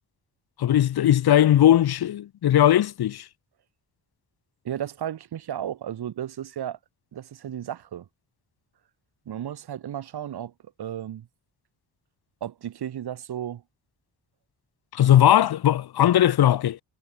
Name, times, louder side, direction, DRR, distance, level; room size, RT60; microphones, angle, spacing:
voice 1, 0.6-3.2 14.9-16.8, left 11 dB, 70° left, 1.2 m, -19 dB
voice 2, 4.6-6.8 7.1-8.1 9.2-10.5 10.8-11.3 12.4-13.6, right 10 dB, 80° right, 3.2 m, -34 dB
wide cardioid pair, 140°, 39 cm